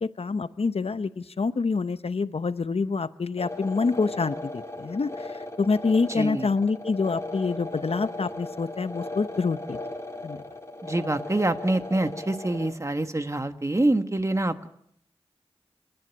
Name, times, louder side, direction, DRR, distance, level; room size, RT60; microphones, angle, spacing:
voice 1, 0.0-9.8 10.2-10.4, left 4 dB, 70° left, 13 dB, 0.7 m, -27 dB
sound 1, 3.4-12.7, left 2 dB, 30° left, 2.4 m, -37 dB
voice 2, 6.1-6.5 10.8-14.7, right 2 dB, 30° right, 8 dB, 1.4 m, -26 dB
28.0 x 10.5 x 9.3 m, 0.73 s
wide cardioid pair, 55°, 10 cm